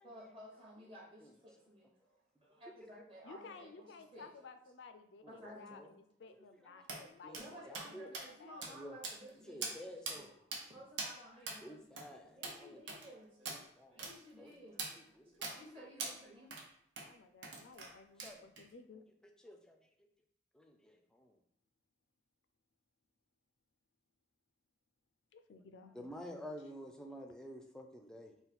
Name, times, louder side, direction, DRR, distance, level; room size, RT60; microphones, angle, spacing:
voice 1, 0.0-4.5 5.3-5.9 7.4-11.8 12.1-16.5, equal, 30° right, -3 dB, 0.8 m, -56 dB
voice 2, 3.2-8.8 17.1-19.0 25.3-26.4, left 4 dB, 70° left, 8 dB, 0.4 m, -56 dB
sound 1, 6.9-7.0 7.3-7.5 7.7-7.9 8.1-8.3 8.6-8.7 9.0-9.3 9.6-9.8 10.1-10.2 10.5-10.6 11.0-11.1 11.5-11.6 12.0-12.1 12.4-12.6 12.9-13.1 13.5-13.6 14.0-14.1 14.8-14.9 15.4-15.6 16.0-16.1 16.5-16.7 17.0-17.1 17.4-17.9 18.2-18.6, right 3 dB, 75° right, 0.8 m, -42 dB
voice 3, 7.7-8.1 8.7-8.9 9.5-10.3 11.6-12.8 13.5-14.0 14.4-14.5 15.2-15.5 18.2-18.4 19.4-19.8 20.5-21.3 25.9-28.3, equal, 5° left, 3 dB, 0.4 m, -50 dB
3.9 x 2.2 x 4.2 m, 0.70 s
head